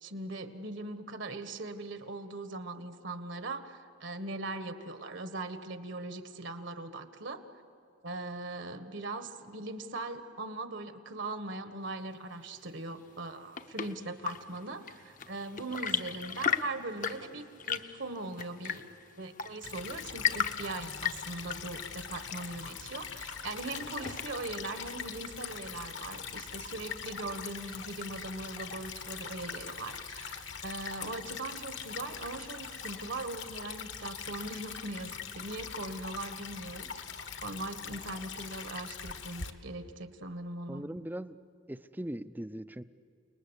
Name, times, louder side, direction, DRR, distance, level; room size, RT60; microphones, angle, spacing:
voice 1, 0.0-7.4 8.0-18.8 19.2-36.9 37.4-40.8, right 2 dB, 65° right, 9 dB, 1.6 m, -40 dB
Chirp tweet / Engine / Tap, 13.1-24.6, left 7 dB, 40° left, 0.8 m, -37 dB
Stream / Trickle dribble, 19.6-39.5, left 6 dB, 65° left, 1.5 m, -42 dB
voice 2, 40.7-41.4 41.7-42.8, right 1 dB, 10° right, 13 dB, 0.5 m, -39 dB
29.5 x 20.0 x 8.3 m, 2.7 s
head